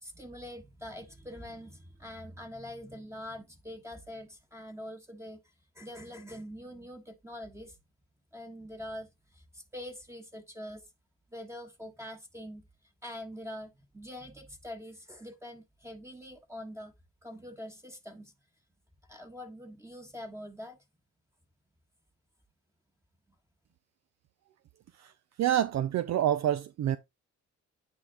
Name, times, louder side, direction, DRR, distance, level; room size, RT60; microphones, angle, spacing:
voice 1, 0.0-5.4 5.7-7.8 8.3-10.9 11.3-12.7 13.0-16.9 17.2-18.3 19.1-20.8, left 1 dB, 10° right, 1.3 m, -44 dB
voice 2, 25.4-27.0, right 11 dB, 60° right, 0.6 m, -27 dB
9.6 x 3.5 x 3.7 m
cardioid pair, 90°, 30 cm